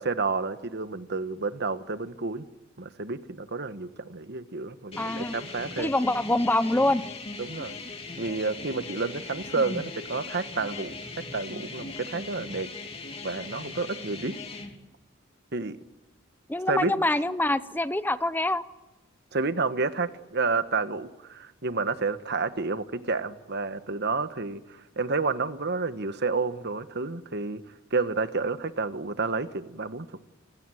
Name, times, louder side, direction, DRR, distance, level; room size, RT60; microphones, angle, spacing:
voice 1, 0.0-2.5 2.8-5.9 7.4-7.8 8.2-12.7 13.2-14.3 15.5-15.8 16.7-16.9 19.3-27.6 27.9-30.1, right 4 dB, 55° right, 11 dB, 1.4 m, -30 dB
sound 1, 4.9-14.7, left 3 dB, 30° left, 3.1 m, -39 dB
voice 2, 5.0-5.4 5.8-7.0 9.6-9.8 16.5-18.6, left 1 dB, 10° left, 14 dB, 0.8 m, -25 dB
29.5 x 16.5 x 9.3 m, 1.0 s
head